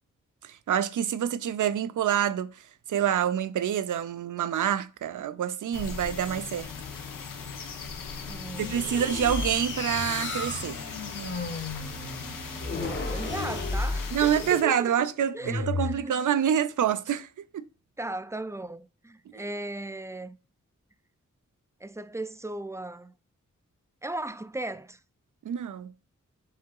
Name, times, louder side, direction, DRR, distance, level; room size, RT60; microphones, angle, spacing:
voice 1, 0.4-2.5 2.9-6.7 8.7-10.8 14.1-17.3 17.5-17.7 25.4-25.9, right 9 dB, 70° right, 0.5 m, -27 dB
sound 1, 5.7-14.6, left 5 dB, 90° left, 0.6 m, -39 dB
voice 2, 8.3-8.9 12.7-15.1 15.3-16.1 18.0-20.4 21.8-23.1 24.0-25.0, right 2 dB, 10° right, 0.3 m, -37 dB
sound 2, 8.6-14.5 15.4-16.0, left 3 dB, 35° left, 0.8 m, -33 dB
sound 3, 8.8-14.9, right 2 dB, 35° right, 0.8 m, -47 dB
5.6 x 3.5 x 2.3 m
cardioid pair, 40°, 32 cm